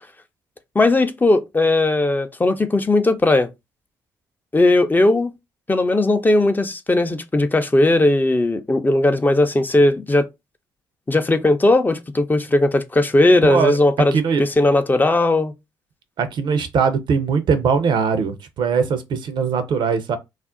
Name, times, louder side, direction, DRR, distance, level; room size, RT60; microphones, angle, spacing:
voice 1, 0.7-3.5 4.5-5.3 5.7-10.3 11.1-15.5, left 2 dB, 20° left, 0.5 m, -17 dB
voice 2, 13.4-13.8 14.1-14.4 16.2-20.2, right 5 dB, 60° right, 0.6 m, -20 dB
2.5 x 2.0 x 3.6 m
hypercardioid pair, 50°, 9 cm